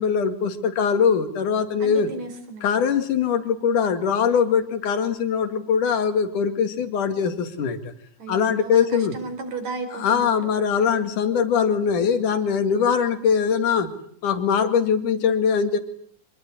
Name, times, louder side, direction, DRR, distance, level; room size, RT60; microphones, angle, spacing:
voice 1, 0.0-2.1 2.6-7.9 8.3-9.2 9.9-13.9 14.2-15.8, left 6 dB, 85° left, 9 dB, 3.7 m, -22 dB
voice 2, 1.8-2.7 8.2-10.5, right 3 dB, 65° right, 8 dB, 5.6 m, -34 dB
25.5 x 20.0 x 10.0 m, 0.63 s
omnidirectional pair, 3.5 m